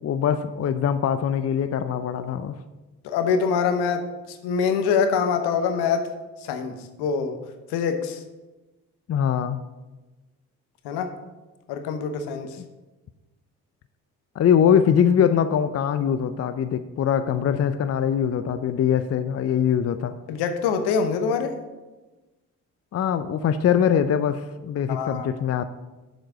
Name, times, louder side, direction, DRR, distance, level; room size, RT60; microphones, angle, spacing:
voice 1, 0.0-2.6 9.1-9.6 12.6-12.7 14.4-20.1 22.9-25.6, left 8 dB, 35° left, 11 dB, 0.5 m, -22 dB
voice 2, 3.0-6.1 6.4-7.4 7.7-8.2 10.8-11.1 11.7-12.5 20.3-21.6 24.9-25.3, left 6 dB, 70° left, 7 dB, 1.0 m, -24 dB
7.4 x 5.1 x 6.5 m, 1.1 s
hypercardioid pair, 45°, 40 cm